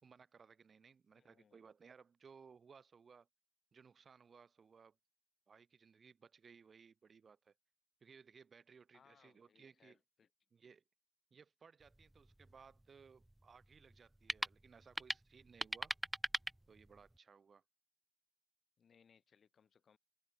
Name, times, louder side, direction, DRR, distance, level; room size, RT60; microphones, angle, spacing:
voice 1, 0.0-3.3 3.7-5.0 5.5-7.5 8.0-10.0 10.5-10.8 11.3-16.0 16.7-17.6, right 6 dB, 55° right, 5.7 m, -62 dB
voice 2, 1.1-1.6 8.9-10.3 18.8-20.0, left 7 dB, 65° left, 4.4 m, -70 dB
sound 1, 11.8-17.2, right 1 dB, 10° right, 0.9 m, -44 dB
open air
cardioid pair, 70°, 0 cm